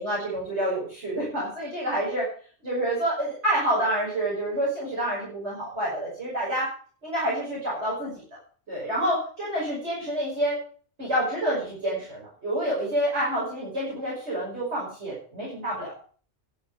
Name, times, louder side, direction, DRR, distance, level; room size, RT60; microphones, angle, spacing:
voice 1, 0.0-2.3 2.6-6.7 7.0-8.2 8.7-10.6 11.0-15.9, right 1 dB, 65° right, -6 dB, 6.0 m, -28 dB
11.5 x 7.3 x 8.2 m, 0.44 s
omnidirectional pair, 1.2 m